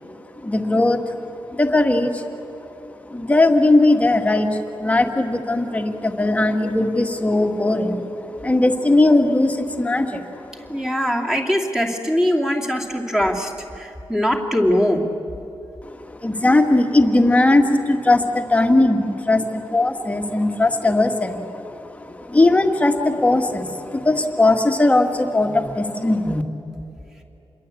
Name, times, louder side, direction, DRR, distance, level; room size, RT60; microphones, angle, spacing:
voice 1, 0.4-1.0 1.5-2.3 3.1-8.1 8.4-10.8 15.9-26.4, left 2 dB, 15° left, 4 dB, 1.8 m, -19 dB
voice 2, 10.7-15.1, equal, 5° right, 0 dB, 2.7 m, -21 dB
28.0 x 22.0 x 8.5 m, 3.0 s
wide cardioid pair, 155°, 9 cm